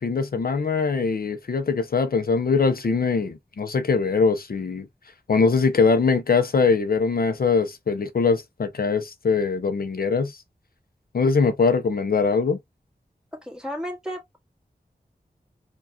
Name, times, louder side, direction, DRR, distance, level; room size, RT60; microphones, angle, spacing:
voice 1, 0.0-4.9 5.3-10.4 11.1-12.6, left 4 dB, 65° left, 0.5 m, -22 dB
voice 2, 13.4-14.4, equal, 5° right, 1.7 m, -33 dB
4.7 x 2.3 x 2.6 m
wide cardioid pair, 70°, 17 cm